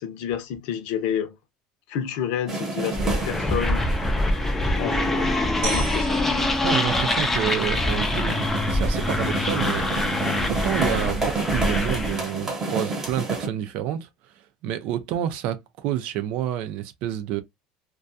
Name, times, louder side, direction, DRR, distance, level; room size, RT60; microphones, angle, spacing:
voice 1, 0.0-1.4 1.9-3.8 4.8-6.2, left 9 dB, 70° left, 0.7 m, -29 dB
sound 1, 2.5-13.5, right 3 dB, 20° right, 0.9 m, -31 dB
sound 2, 2.9-12.3, left 1 dB, 10° left, 0.5 m, -24 dB
sound 3, 5.6-8.1, right 4 dB, 80° right, 1.0 m, -35 dB
voice 2, 6.6-9.9 10.5-14.1 14.6-17.4, right 11 dB, 60° right, 0.5 m, -29 dB
2.3 x 2.2 x 2.5 m
supercardioid pair, 130°, 2 cm